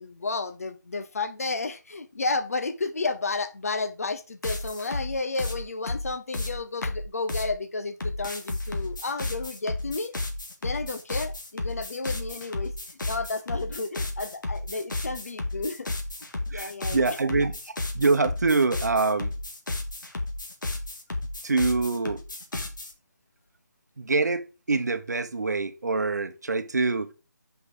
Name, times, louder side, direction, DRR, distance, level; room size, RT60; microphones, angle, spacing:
voice 1, 0.0-10.1 10.6-12.7 13.1-15.9 16.5-17.2, left 3 dB, 50° left, 0.7 m, -32 dB
sound 1, 4.4-7.5 8.0-22.9, left 2 dB, 85° left, 2.1 m, -33 dB
voice 2, 16.5-19.3 21.2-22.2 24.0-27.1, right 3 dB, 60° right, 1.0 m, -25 dB
6.1 x 5.6 x 3.8 m
figure-of-eight pair, 175°, 10 cm